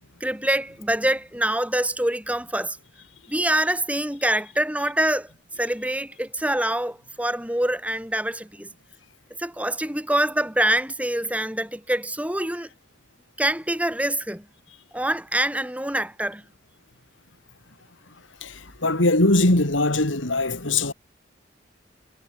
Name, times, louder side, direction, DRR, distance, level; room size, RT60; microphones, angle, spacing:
voice 1, 0.2-2.8 3.3-5.3 5.6-8.7 9.4-12.7 13.4-14.4 14.9-16.4, right 1 dB, 5° right, 7.8 m, -25 dB
voice 2, 18.4-20.9, left 2 dB, 80° left, 3.3 m, -21 dB
head